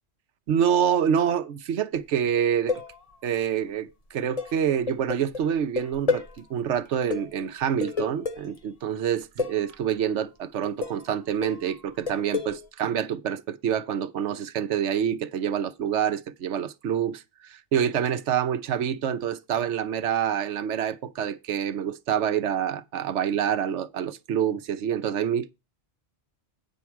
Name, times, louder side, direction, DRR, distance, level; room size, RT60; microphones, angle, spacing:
voice 1, 0.5-2.8 3.2-25.5, right 8 dB, 80° right, 1.1 m, -27 dB
sound 1, 2.4-3.4 4.4-6.4 6.8-6.9 7.1-8.6 9.4-9.8 10.6-11.2 11.4-12.7, left 5 dB, 35° left, 1.0 m, -31 dB
9.2 x 4.7 x 7.1 m
omnidirectional pair, 1.2 m